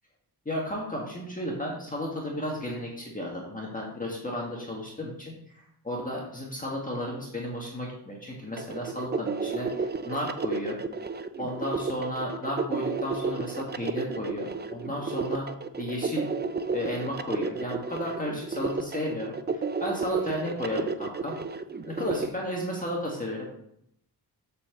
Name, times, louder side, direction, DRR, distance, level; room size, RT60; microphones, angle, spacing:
voice 1, 0.4-5.3 5.8-10.8 11.4-15.5 15.8-16.3 16.7-21.4 21.8-23.5, left 1 dB, 20° left, -3 dB, 1.6 m, -33 dB
sound 1, 8.6-22.3, right 4 dB, 25° right, 0.4 m, -32 dB
7.4 x 4.5 x 6.6 m, 0.72 s
wide cardioid pair, 175°, 40 cm